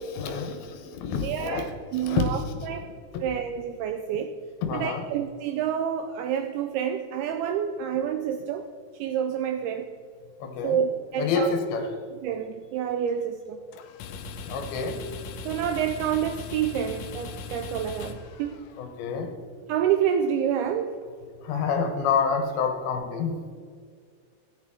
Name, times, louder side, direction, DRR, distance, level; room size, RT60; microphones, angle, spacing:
voice 1, 0.2-1.6 1.9-2.7 4.6-5.0 10.4-10.8 11.2-11.9 14.5-15.0 18.8-19.4 21.4-23.4, left 6 dB, 75° left, 2.7 m, -28 dB
voice 2, 1.1-2.9 3.2-4.4 4.7-8.7 9.0-9.9 10.6-11.5 12.2-13.6 15.4-18.6 19.7-21.0, right 8 dB, 80° right, 2.3 m, -28 dB
sound 1, 13.7-18.9, left 4 dB, 90° left, 1.9 m, -39 dB
14.5 x 9.0 x 3.6 m
omnidirectional pair, 4.9 m